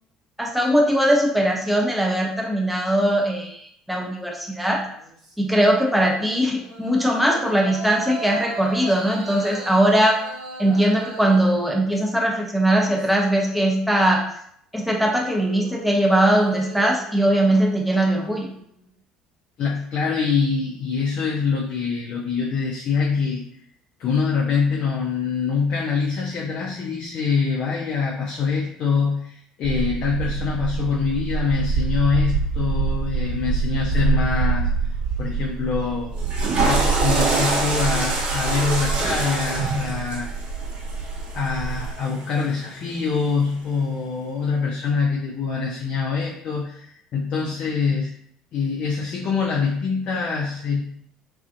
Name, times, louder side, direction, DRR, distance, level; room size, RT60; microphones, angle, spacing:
voice 1, 0.4-4.8 5.4-10.2 10.6-14.2 14.7-18.5, right 1 dB, 5° right, 0 dB, 0.6 m, -20 dB
sound 1, 4.9-12.3 12.7-13.9 14.9-18.8, right 2 dB, 80° right, 0.7 m, -38 dB
voice 2, 19.6-23.4 24.0-34.7 35.2-36.1 36.6-40.3 41.3-48.1 48.5-50.8, left 5 dB, 50° left, -2 dB, 0.4 m, -24 dB
sound 2, 29.6-41.9, right 4 dB, 60° right, 1.2 m, -26 dB
Water / Toilet flush, 36.1-42.4, right 3 dB, 45° right, 0.7 m, -26 dB
2.5 x 2.4 x 2.4 m, 0.68 s
hypercardioid pair, 60°, 3 cm